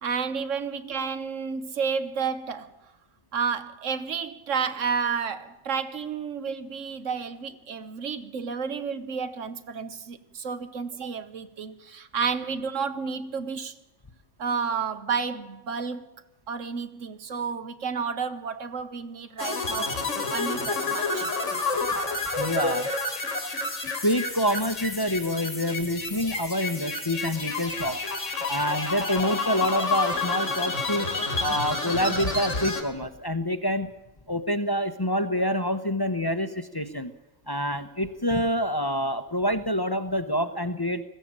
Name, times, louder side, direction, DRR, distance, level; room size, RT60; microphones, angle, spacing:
voice 1, 0.0-2.7 3.3-13.7 14.4-16.1 16.5-20.0 20.3-21.3, right 6 dB, 85° right, 1.5 m, -31 dB
sound 1, 19.4-32.8, left 3 dB, 80° left, 2.8 m, -29 dB
voice 2, 22.4-22.9 24.0-28.0 28.5-31.1 31.4-33.9 34.3-37.1 37.5-41.0, equal, 20° left, 0.8 m, -27 dB
20.5 x 14.5 x 8.8 m
omnidirectional pair, 1.3 m